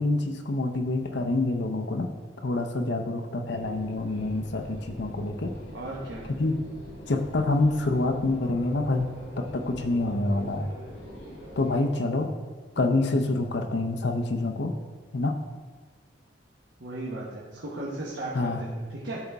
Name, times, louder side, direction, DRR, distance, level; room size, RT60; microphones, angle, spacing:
voice 1, 0.0-2.1 2.4-5.5 6.4-6.6 7.1-9.1 9.4-10.7 11.6-12.3 12.8-14.7 15.1-15.4 18.3-18.6, left 2 dB, 65° left, 6 dB, 0.7 m, -26 dB
sound 1, 3.5-11.9, equal, 90° left, 2.2 m, -44 dB
voice 2, 5.7-6.2 16.8-19.2, right 1 dB, 70° right, -4 dB, 1.2 m, -36 dB
12.0 x 4.0 x 3.5 m, 1.4 s
head